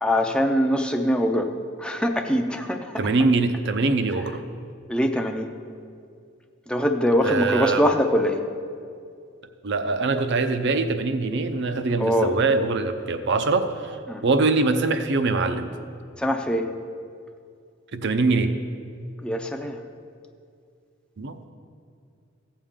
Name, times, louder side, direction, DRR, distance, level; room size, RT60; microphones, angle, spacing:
voice 1, 0.0-1.5 1.8-3.1 4.9-5.5 6.7-8.4 12.0-12.4 14.1-14.2 16.2-16.7 19.2-19.8, equal, 5° left, 4 dB, 0.5 m, -23 dB
voice 2, 3.0-4.4 7.2-7.8 9.6-14.0 14.2-15.7 17.9-18.5 21.2-21.4, right 3 dB, 60° right, 8 dB, 0.6 m, -23 dB
15.5 x 7.1 x 3.7 m, 2.3 s
head